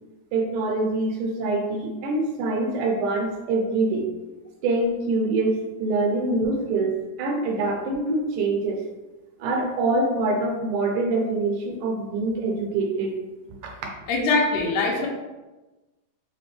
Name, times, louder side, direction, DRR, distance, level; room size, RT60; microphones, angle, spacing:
voice 1, 0.3-4.1 4.6-6.9 7.2-8.8 9.4-13.1 13.6-13.7, right 2 dB, 80° right, 0 dB, 2.2 m, -25 dB
voice 2, 14.1-15.1, left 3 dB, 85° left, -1 dB, 1.5 m, -22 dB
5.0 x 2.2 x 3.2 m, 1.1 s
omnidirectional pair, 3.7 m